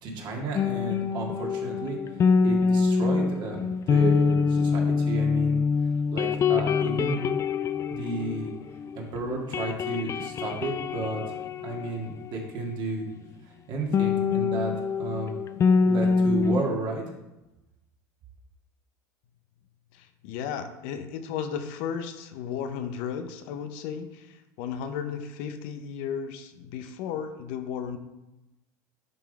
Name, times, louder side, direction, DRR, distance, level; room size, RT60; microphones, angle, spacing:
voice 1, 0.0-2.0 2.4-5.6 6.1-7.3 7.9-8.5 8.9-13.0 13.4-14.7 15.0-15.3 15.9-17.0, right 3 dB, 50° right, -1 dB, 2.2 m, -32 dB
sound 1, 0.5-9.0 9.3-12.8 13.9-16.6, left 5 dB, 30° left, 0.4 m, -25 dB
voice 2, 19.9-28.0, left 7 dB, 65° left, 8 dB, 0.8 m, -34 dB
10.5 x 3.8 x 4.2 m, 0.96 s
hypercardioid pair, 85°, 10 cm